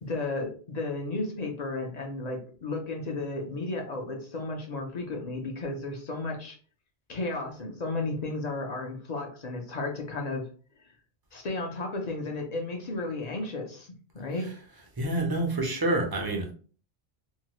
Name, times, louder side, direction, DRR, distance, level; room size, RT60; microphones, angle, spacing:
voice 1, 0.0-6.6 7.1-10.5 11.3-14.5, left 2 dB, 45° left, 2 dB, 0.6 m, -33 dB
voice 2, 15.0-16.5, right 2 dB, 30° right, 2 dB, 0.4 m, -28 dB
2.7 x 2.2 x 2.9 m, 0.39 s
omnidirectional pair, 1.2 m